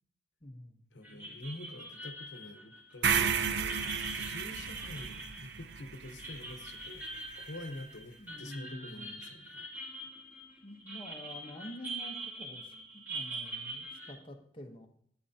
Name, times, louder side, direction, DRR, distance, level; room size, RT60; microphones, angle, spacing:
voice 1, 0.4-0.8 8.2-9.2 10.6-14.9, left 1 dB, 30° left, 2 dB, 0.9 m, -48 dB
voice 2, 0.9-9.7, left 1 dB, 80° left, 7 dB, 1.0 m, -47 dB
sound 1, 1.0-14.1, right 2 dB, 10° right, 2.8 m, -44 dB
sound 2, 3.0-7.2, right 6 dB, 70° right, 0.6 m, -33 dB
12.0 x 8.8 x 2.8 m, 0.65 s
head